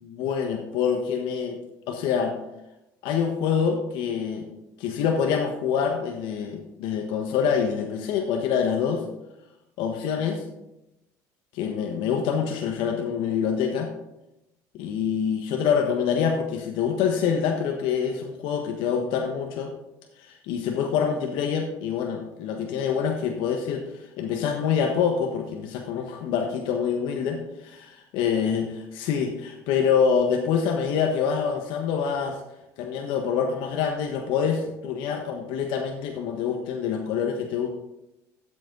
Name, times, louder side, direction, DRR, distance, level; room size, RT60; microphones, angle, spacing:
voice 1, 0.0-1.6 1.9-2.4 3.0-4.5 4.8-9.0 9.8-10.4 11.5-13.9 14.8-19.7 20.2-28.7 29.0-32.4 32.8-37.8, left 7 dB, 75° left, 3 dB, 1.4 m, -26 dB
13.0 x 8.0 x 4.0 m, 0.91 s
cardioid pair, 115°, 8 cm